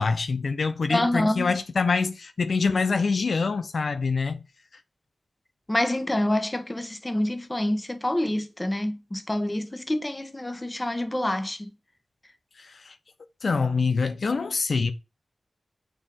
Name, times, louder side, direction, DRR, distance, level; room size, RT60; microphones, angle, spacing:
voice 1, 0.0-4.4 12.6-12.9 13.4-14.9, left 4 dB, 75° left, 0.8 m, -25 dB
voice 2, 0.9-1.6 5.7-11.7, left 1 dB, 20° left, 1.4 m, -27 dB
6.6 x 4.6 x 6.2 m
wide cardioid pair, 75°, 0 cm